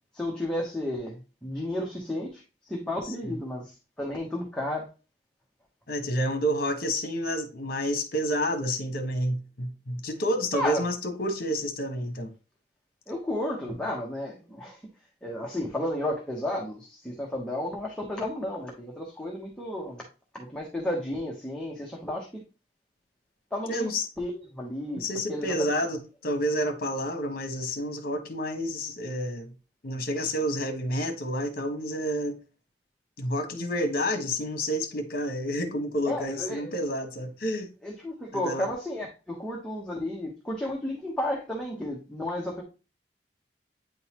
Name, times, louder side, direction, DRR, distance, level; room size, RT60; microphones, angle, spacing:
voice 1, 0.1-2.4 2.7-4.9 10.5-10.8 13.1-14.8 15.2-20.0 20.3-22.4 23.5-23.9 24.2-25.0 25.3-25.7 36.1-36.7 37.8-42.6, left 1 dB, 5° left, 1.0 m, -32 dB
voice 2, 5.9-12.3 23.7-24.1 25.0-29.5 29.8-32.4 33.2-37.7 38.3-38.7, equal, 55° left, 1.2 m, -29 dB
8.9 x 3.9 x 2.9 m
head